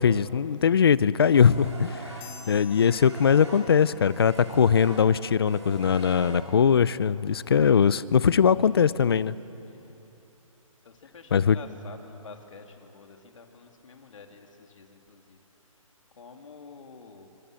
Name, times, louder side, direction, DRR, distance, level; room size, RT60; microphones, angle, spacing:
voice 1, 0.0-2.1 2.5-9.4 11.3-11.6, left 7 dB, 45° left, 18 dB, 0.6 m, -21 dB
sound 1, 1.3-6.8, right 2 dB, 55° right, 7.9 m, -43 dB
sound 2, 2.2-4.1, left 6 dB, 15° left, 1.6 m, -49 dB
voice 2, 2.4-2.8 9.6-10.0 10.8-15.4 16.2-17.3, left 4 dB, 60° left, 4 dB, 2.7 m, -48 dB
25.5 x 25.5 x 7.6 m, 2.9 s
hypercardioid pair, 170°, 18 cm